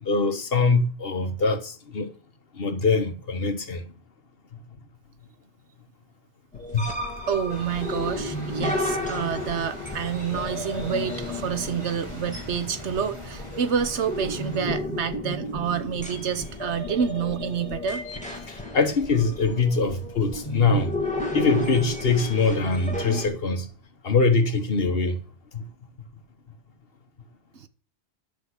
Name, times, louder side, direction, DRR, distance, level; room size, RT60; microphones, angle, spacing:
voice 1, 0.0-2.1 2.6-3.8 6.7-6.8 18.5-21.0 21.3-23.7 24.0-25.2 25.5-25.6, left 4 dB, 60° left, 1.5 m, -23 dB
sound 1, 6.5-23.3, left 2 dB, 5° left, 2.5 m, -33 dB
voice 2, 7.3-18.0 27.5-27.7, right 7 dB, 80° right, 1.2 m, -28 dB
sound 2, 7.5-14.7, right 1 dB, 25° right, 2.6 m, -41 dB
10.5 x 5.8 x 8.1 m
omnidirectional pair, 1.1 m